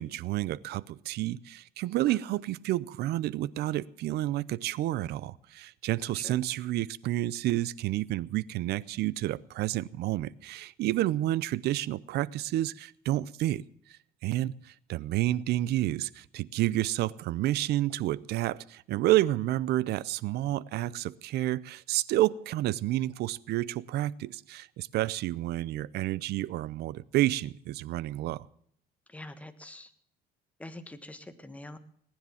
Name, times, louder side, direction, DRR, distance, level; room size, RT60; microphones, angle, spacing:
voice 1, 0.0-13.6 13.9-28.5, right 15 dB, 75° right, 0.6 m, -30 dB
voice 2, 29.1-29.9 30.6-31.8, left 1 dB, 10° left, 1.5 m, -45 dB
19.0 x 10.0 x 7.1 m
cardioid pair, 110°, 17 cm